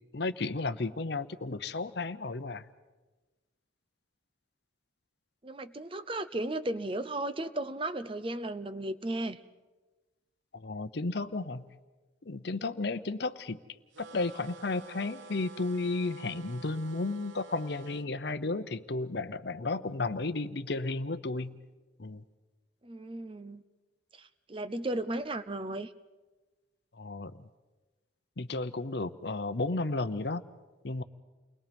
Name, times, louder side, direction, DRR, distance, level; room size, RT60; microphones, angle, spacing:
voice 1, 0.1-2.6 10.5-11.7 12.3-13.6 14.1-21.6 22.0-22.2 27.0-27.3 28.4-30.4 30.8-31.0, left 3 dB, 60° left, 12 dB, 0.8 m, -33 dB
voice 2, 5.4-9.4 22.8-23.6 24.1-25.9, right 1 dB, 25° right, 12 dB, 0.6 m, -35 dB
sound 1, 13.9-18.1, right 4 dB, 80° right, 1.0 m, -50 dB
29.5 x 21.0 x 5.3 m, 1.2 s
head